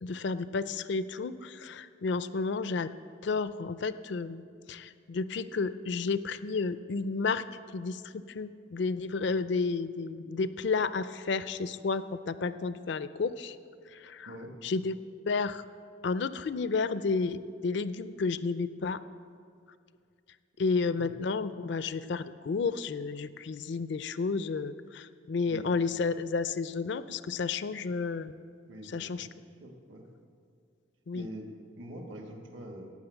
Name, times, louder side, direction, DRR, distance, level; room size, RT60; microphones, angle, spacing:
voice 1, 0.0-2.9 3.2-4.4 4.7-7.4 7.7-13.6 13.9-14.3 14.6-15.0 15.3-15.6 16.0-19.0 20.6-28.3 28.9-29.3 31.1-31.3, left 4 dB, 60° left, 14 dB, 0.4 m, -31 dB
voice 2, 28.7-29.3 29.6-30.0 31.1-32.9, right 1 dB, 70° right, 1 dB, 1.4 m, -44 dB
17.5 x 6.3 x 7.9 m, 2.2 s
head